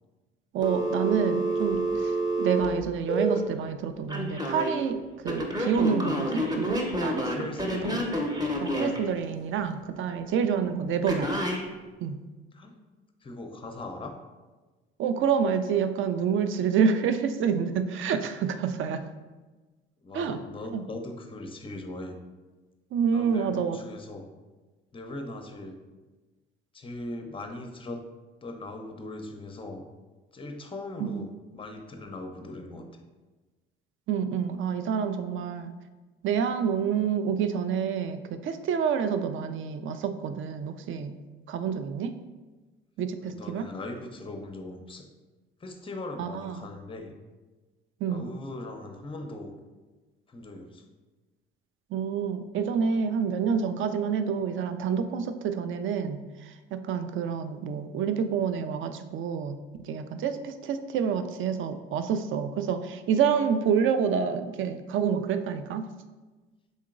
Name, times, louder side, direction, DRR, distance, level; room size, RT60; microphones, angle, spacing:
voice 1, 0.5-7.3 7.9-8.0 8.6-11.3 12.0-12.2 15.0-19.1 20.1-20.4 20.7-20.8 22.9-23.8 31.0-31.2 34.1-35.7 36.2-41.1 41.5-42.1 43.0-43.7 46.2-46.6 48.0-48.3 51.9-59.6 59.8-65.9, right 7 dB, 40° right, 9 dB, 0.4 m, -28 dB
Telephone, 0.6-3.4 4.1-4.7 5.3-9.0 11.1-11.6, right 1 dB, 15° right, 0.9 m, -28 dB
voice 2, 7.2-8.1 12.5-12.8 13.2-14.1 20.0-22.2 23.1-24.3 24.9-25.8 26.7-28.0 28.4-29.9 30.3-33.0 43.2-45.1 45.6-47.2 48.1-49.5 50.3-50.9, left 2 dB, 15° left, 5 dB, 0.6 m, -40 dB
5.3 x 3.6 x 2.4 m, 1.2 s
hypercardioid pair, 55°, 30 cm